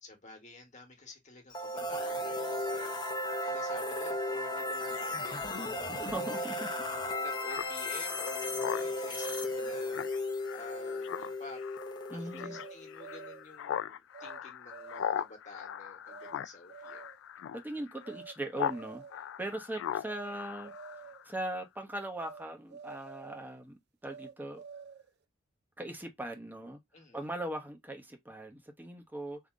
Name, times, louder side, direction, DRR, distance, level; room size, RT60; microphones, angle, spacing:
voice 1, 0.0-5.5 6.0-10.1 10.5-11.6 12.1-17.1 26.9-27.2, left 3 dB, 35° left, 1.5 m, -50 dB
sound 1, 1.5-13.3, left 1 dB, 20° left, 0.9 m, -35 dB
voice 2, 5.8-6.7 12.1-12.6 17.5-20.7 21.2-24.6 25.8-26.8 27.1-29.4, right 1 dB, 10° right, 0.9 m, -40 dB
Speech synthesizer, 7.5-18.8 19.1-21.3, left 9 dB, 65° left, 0.3 m, -40 dB
sound 2, 12.4-13.5 14.1-14.4 14.7-15.3 16.1-16.3 16.7-17.2 18.0-18.3 18.6-19.3 20.0-20.3 20.6-21.3 22.2-22.4 22.7-23.5 24.1-25.1, right 5 dB, 55° right, 0.5 m, -49 dB
3.7 x 2.8 x 3.6 m
head